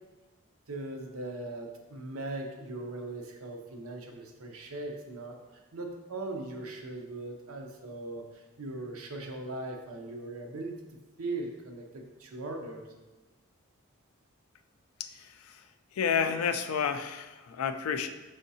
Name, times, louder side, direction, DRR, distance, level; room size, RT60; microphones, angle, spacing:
voice 1, 0.7-10.8 11.2-12.9, right 2 dB, 85° right, 2 dB, 0.6 m, -39 dB
voice 2, 15.0-15.6 15.9-18.1, left 7 dB, 85° left, 9 dB, 0.3 m, -31 dB
5.4 x 3.5 x 2.7 m, 1.2 s
head